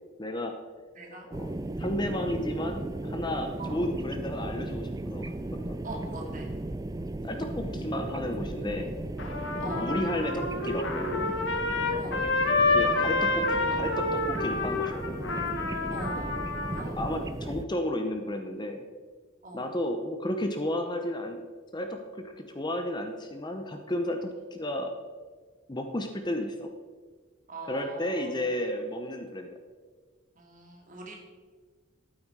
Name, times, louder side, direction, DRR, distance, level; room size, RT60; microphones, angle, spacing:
voice 1, 0.2-0.5 1.3-5.7 7.2-8.9 9.6-11.3 12.7-15.2 16.8-18.8 19.5-21.4 21.7-24.9 25.7-26.7 27.7-29.5, left 1 dB, 20° left, 5 dB, 0.8 m, -33 dB
voice 2, 0.9-1.3 3.6-3.8 5.8-6.5 9.6-9.9 12.0-12.2 12.8-12.9 15.9-16.3 16.7-17.0 19.4-19.6 27.5-28.3 30.4-31.1, right 2 dB, 40° right, 0 dB, 2.5 m, -41 dB
sound 1, 1.3-17.6, right 2 dB, 15° right, 0.4 m, -36 dB
Trumpet, 9.2-16.8, left 3 dB, 60° left, 1.5 m, -28 dB
12.5 x 8.8 x 4.7 m, 1.5 s
head